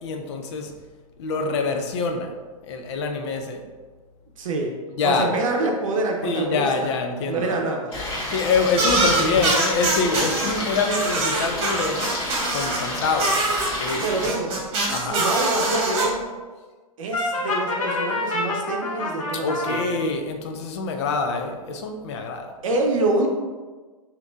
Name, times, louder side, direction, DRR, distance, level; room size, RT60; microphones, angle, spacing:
voice 1, 0.0-0.7 1.2-2.3 2.6-3.6 5.0-5.3 6.2-7.6 8.3-13.4 13.8-14.0 14.9-15.3 19.3-22.5, left 4 dB, 50° left, 5 dB, 0.6 m, -25 dB
voice 2, 4.4-4.8 5.0-6.9 7.3-8.0 14.0-14.6 14.9-16.3 17.0-19.9 22.6-23.3, right 2 dB, 65° right, 1 dB, 0.7 m, -26 dB
Stream, 7.9-14.3, left 1 dB, 30° left, 1.4 m, -30 dB
sound 1, 8.7-10.5 10.9-12.8 13.2-16.0, right 2 dB, 30° right, 1.4 m, -23 dB
Brass instrument, 17.1-19.8, left 2 dB, 65° left, 1.1 m, -27 dB
5.9 x 2.9 x 2.5 m, 1.4 s
figure-of-eight pair, 110°, 19 cm